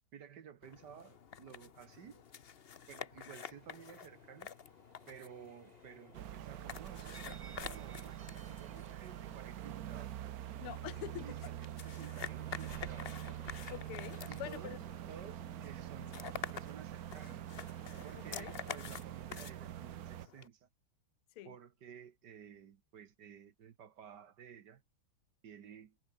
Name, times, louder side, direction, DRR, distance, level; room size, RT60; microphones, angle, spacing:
voice 1, 0.1-2.2 2.9-4.5 5.1-10.1 11.2-13.2 14.3-14.8 15.1-16.2 16.5-17.5 18.0-20.7 21.4-24.8 25.4-26.0, right 8 dB, 55° right, 1.7 m, -54 dB
sound 1, 0.6-20.5, left 7 dB, 55° left, 0.6 m, -49 dB
sound 2, 3.4-19.2, right 4 dB, 25° right, 1.1 m, -63 dB
sound 3, 6.1-20.3, right 13 dB, 80° right, 0.8 m, -45 dB
voice 2, 10.6-11.3 13.7-14.8 16.0-16.2 18.2-18.5 21.4-21.6, left 13 dB, 85° left, 1.8 m, -46 dB
omnidirectional pair, 2.4 m